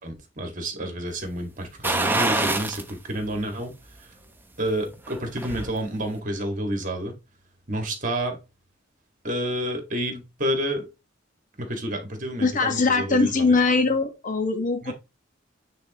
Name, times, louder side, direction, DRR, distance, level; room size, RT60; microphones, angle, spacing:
voice 1, 0.0-3.7 4.6-7.1 7.7-8.4 9.2-10.9 11.6-13.4 14.8-14.9, right 1 dB, 45° right, 1.9 m, -29 dB
sound 1, 1.8-2.9 3.3-3.4 4.9-5.7 6.1-6.2, right 2 dB, 10° right, 0.8 m, -25 dB
voice 2, 12.4-14.9, left 3 dB, 45° left, 1.4 m, -22 dB
9.1 x 3.9 x 3.0 m
head